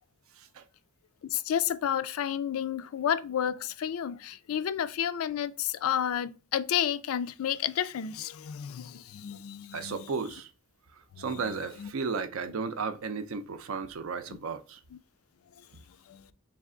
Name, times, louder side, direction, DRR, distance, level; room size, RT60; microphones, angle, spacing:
voice 1, 1.3-10.1 11.2-11.9 14.3-14.4 16.1-16.3, left 9 dB, 80° left, 0.4 m, -31 dB
voice 2, 9.7-10.5 11.2-14.8, right 5 dB, 70° right, 0.5 m, -34 dB
3.4 x 3.2 x 3.7 m
head